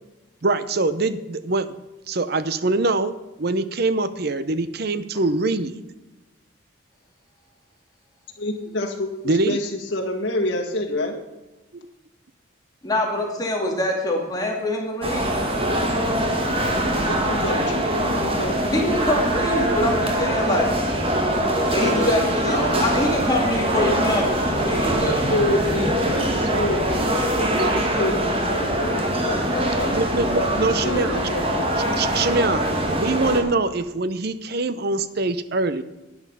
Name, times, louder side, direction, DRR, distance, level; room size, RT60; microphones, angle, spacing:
voice 1, 0.4-1.7 2.1-5.9 9.2-9.6 11.7-11.8 22.8-23.1 24.2-25.0 26.3-26.7 27.0-27.1 27.5-27.8 29.9-31.2 32.0-35.8, right 3 dB, 50° right, 13 dB, 0.7 m, -24 dB
voice 2, 8.4-11.2 17.0-17.9 18.1-18.5 21.7-22.1 25.3-29.9 30.6-31.7, left 1 dB, 60° left, -1 dB, 2.0 m, -28 dB
voice 3, 12.8-15.3 18.7-20.7 21.7-25.3, left 1 dB, 20° left, -1 dB, 2.3 m, -24 dB
sound 1, 15.0-33.4, right 1 dB, 25° right, 1.5 m, -23 dB
11.0 x 9.7 x 5.5 m, 1.0 s
head